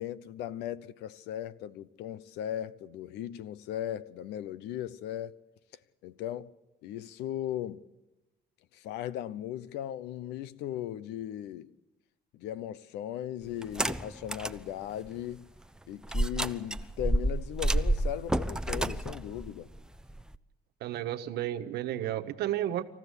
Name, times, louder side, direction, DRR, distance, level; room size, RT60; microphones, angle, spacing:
voice 1, 0.0-5.4 6.0-6.5 6.8-7.8 8.7-11.7 12.3-15.4 15.9-19.7, left 11 dB, 90° left, 0.9 m, -37 dB
sound 1, 13.6-14.6 15.1-15.2 16.1-20.4, right 1 dB, 5° right, 0.7 m, -30 dB
voice 2, 20.8-22.8, right 12 dB, 75° right, 1.4 m, -32 dB
27.0 x 14.5 x 8.3 m
cardioid pair, 110°, 17 cm